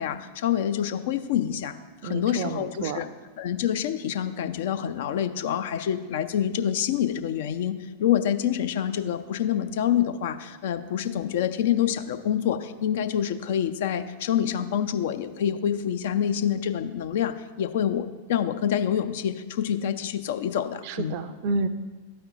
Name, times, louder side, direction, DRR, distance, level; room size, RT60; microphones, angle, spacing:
voice 1, 0.0-1.7 2.0-3.1 3.4-21.2, left 9 dB, 55° left, 9 dB, 0.4 m, -27 dB
voice 2, 2.0-3.0 20.8-21.7, right 4 dB, 45° right, 12 dB, 0.4 m, -30 dB
12.5 x 4.3 x 2.6 m, 1.3 s
figure-of-eight pair, 90°, 0 cm